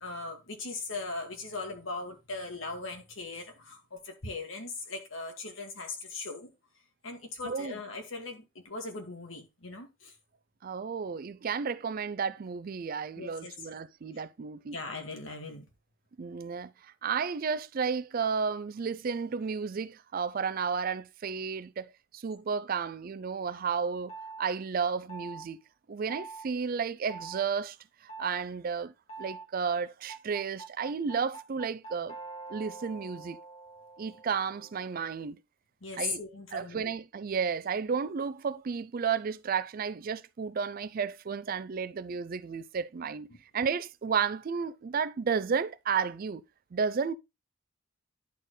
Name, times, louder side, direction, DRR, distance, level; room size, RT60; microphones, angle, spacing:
voice 1, 0.0-6.5 7.0-10.1 13.2-13.5 14.7-15.6 35.8-36.9, left 3 dB, 75° left, 2.1 m, -39 dB
voice 2, 7.4-7.8 10.6-14.8 16.2-25.6 25.9-32.2 32.5-33.4 34.0-35.4 36.0-36.2 36.5-43.3 43.5-46.4 46.7-47.1, right 6 dB, 45° right, 0.4 m, -32 dB
sound 1, 24.1-24.4 25.1-25.5 26.1-26.5 27.1-27.4 28.1-28.4 29.1-29.5 30.1-35.2, right 4 dB, 30° left, 1.7 m, -45 dB
10.5 x 4.4 x 3.1 m
head